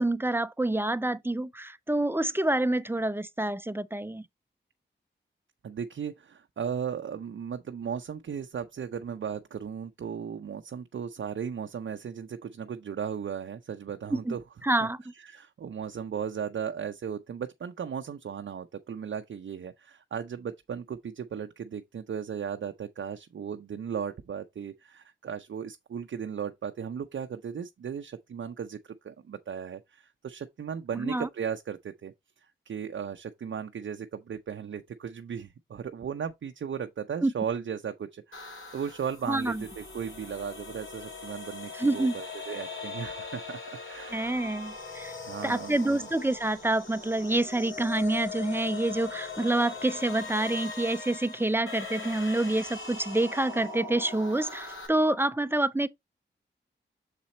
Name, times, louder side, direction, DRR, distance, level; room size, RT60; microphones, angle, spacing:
voice 1, 0.0-4.2 14.1-14.4 14.6-15.0 30.9-31.3 37.2-37.3 39.3-39.6 41.7-42.2 44.1-45.2 45.4-55.9, right 2 dB, 10° right, 0.5 m, -27 dB
voice 2, 5.6-14.4 14.8-14.9 15.2-32.1 32.7-43.6 43.9-44.3 45.2-46.1, right 7 dB, 75° right, 0.5 m, -36 dB
sound 1, 38.3-54.9, left 4 dB, 80° left, 3.2 m, -40 dB
6.7 x 4.2 x 4.0 m
wide cardioid pair, 70°, 20 cm